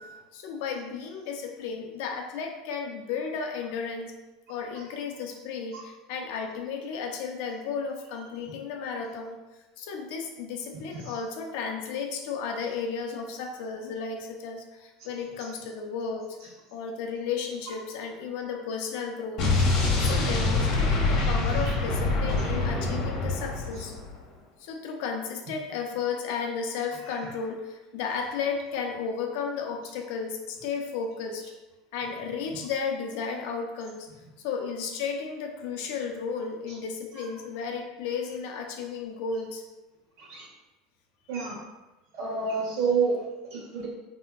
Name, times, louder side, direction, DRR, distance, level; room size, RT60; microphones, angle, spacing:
voice 1, 0.3-4.1 4.5-9.4 9.8-19.4 20.0-23.9 24.6-31.4 31.9-34.1 34.4-39.6, left 5 dB, 70° left, 3 dB, 0.5 m, -33 dB
Explosion, 19.4-24.2, left 3 dB, 50° left, 0.8 m, -25 dB
voice 2, 19.6-20.1 21.5-21.7 23.7-23.8 36.7-36.8 40.2-40.5 41.3-41.6 42.1-43.9, right 5 dB, 60° right, -2 dB, 1.0 m, -31 dB
3.5 x 2.8 x 2.4 m, 1.1 s
supercardioid pair, 140°, 0 cm